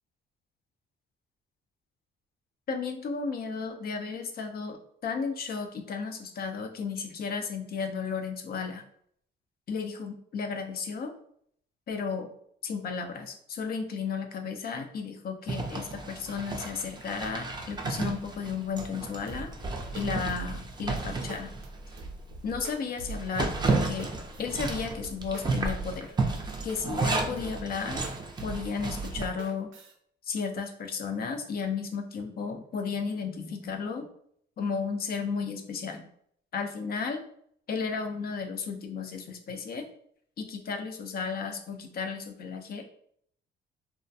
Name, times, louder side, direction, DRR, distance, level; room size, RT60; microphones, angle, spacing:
voice 1, 2.7-8.8 9.7-11.1 11.9-12.3 12.6-19.5 19.9-21.6 22.4-24.1 24.4-26.1 26.6-28.0 28.4-29.7 30.3-34.1 34.6-36.1 36.5-37.2 37.7-39.9 40.4-42.8, left 5 dB, 50° left, 5 dB, 0.5 m, -34 dB
Zipper (clothing), 15.5-22.1 22.5-22.6 23.0-29.3, right 3 dB, 20° right, 0.4 m, -33 dB
sound 1, 19.3-29.9, right 3 dB, 80° right, 0.5 m, -42 dB
2.3 x 2.1 x 2.6 m, 0.66 s
cardioid pair, 90°, 20 cm